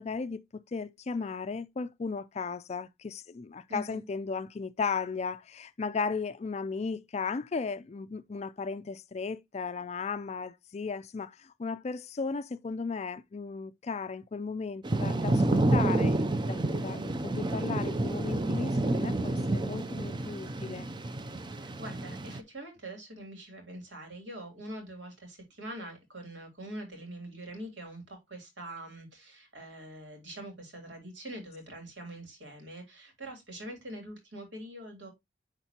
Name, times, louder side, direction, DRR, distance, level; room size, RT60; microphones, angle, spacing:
voice 1, 0.0-16.2 16.5-20.9, left 4 dB, 35° left, 0.4 m, -35 dB
voice 2, 3.7-4.0 21.5-35.1, right 1 dB, 75° right, 3.1 m, -44 dB
Thunder / Rain, 14.8-22.4, right 2 dB, 25° right, 0.5 m, -29 dB
10.0 x 3.7 x 2.8 m
head